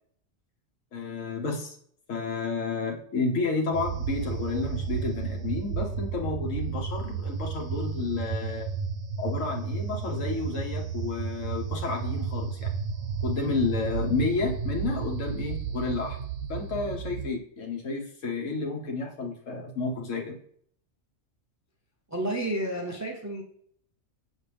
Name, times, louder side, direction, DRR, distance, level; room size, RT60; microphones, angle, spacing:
voice 1, 0.9-1.8 2.1-8.7 9.2-12.7 13.2-16.2 16.5-20.4, left 4 dB, 80° left, 1 dB, 1.5 m, -31 dB
sound 1, 3.7-17.3, right 6 dB, 80° right, 1.2 m, -32 dB
voice 2, 22.1-23.4, right 1 dB, 20° right, 0 dB, 0.6 m, -30 dB
6.4 x 6.3 x 3.4 m, 0.64 s
omnidirectional pair, 1.3 m